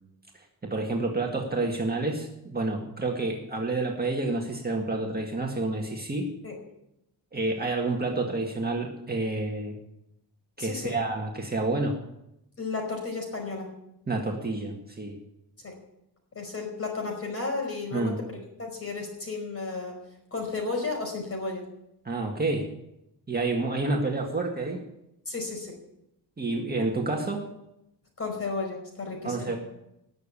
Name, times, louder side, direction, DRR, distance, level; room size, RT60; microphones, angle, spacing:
voice 1, 0.3-6.3 7.3-9.8 10.6-11.9 14.1-15.2 17.9-18.2 22.0-22.7 23.3-24.8 26.4-27.4 29.2-29.6, right 2 dB, 20° right, 1 dB, 1.8 m, -29 dB
voice 2, 10.6-10.9 12.6-13.7 15.6-15.8 16.3-20.0 20.3-21.6 25.3-25.7 28.2-29.5, left 3 dB, 35° left, 2 dB, 4.9 m, -33 dB
19.5 x 7.2 x 8.5 m, 0.83 s
wide cardioid pair, 160°, 41 cm